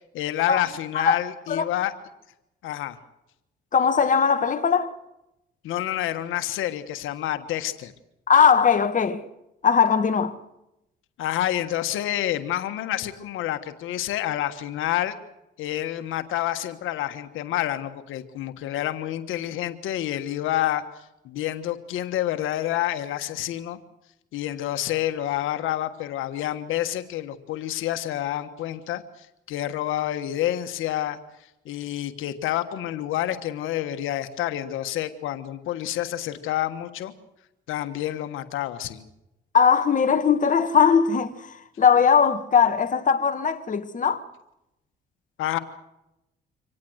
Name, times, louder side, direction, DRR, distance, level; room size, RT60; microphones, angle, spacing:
voice 1, 0.1-1.9 2.6-3.0 5.6-7.9 11.2-15.2 15.6-20.8 21.2-23.8 24.3-29.0 29.5-31.2 31.6-37.1 37.7-39.0 45.4-45.6, left 13 dB, 90° left, 1.4 m, -28 dB
voice 2, 3.7-5.0 8.3-9.2 9.6-10.4 39.5-44.3, left 6 dB, 40° left, 1.7 m, -20 dB
25.5 x 18.0 x 8.0 m
cardioid pair, 90°, 20 cm